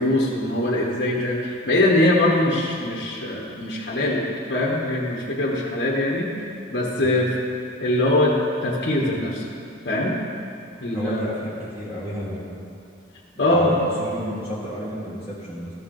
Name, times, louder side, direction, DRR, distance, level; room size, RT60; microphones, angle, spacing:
voice 1, 0.0-4.2 4.5-6.3 6.7-7.3 7.8-8.3 8.6-9.4 9.8-10.1 10.8-11.3 13.4-13.7, left 1 dB, 55° left, -4 dB, 1.1 m, -22 dB
voice 2, 10.9-12.5 13.3-15.7, equal, 10° right, -9 dB, 1.6 m, -32 dB
14.0 x 6.4 x 3.9 m, 2.5 s
head